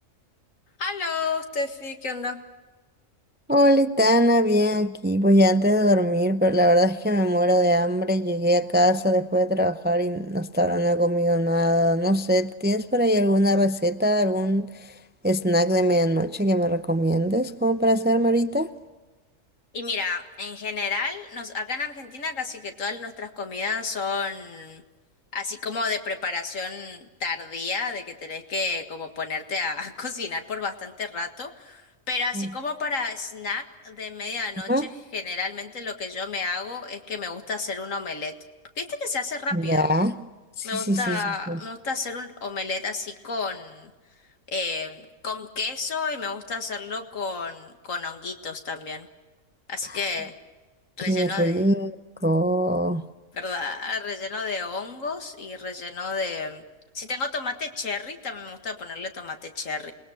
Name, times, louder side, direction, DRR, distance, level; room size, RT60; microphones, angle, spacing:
voice 1, 0.8-2.4 19.7-24.8 25.3-38.3 38.8-39.9 40.6-43.9 44.5-49.1 49.7-50.3 51.0-51.7 53.3-56.6 56.9-59.9, left 4 dB, 80° left, 2.2 m, -31 dB
voice 2, 3.5-14.9 15.2-18.7 32.3-32.5 34.7-34.9 39.5-40.2 40.6-41.6 49.9-50.0 51.1-51.9 52.2-53.0, equal, 15° right, 0.4 m, -21 dB
28.0 x 20.5 x 6.6 m
omnidirectional pair, 1.4 m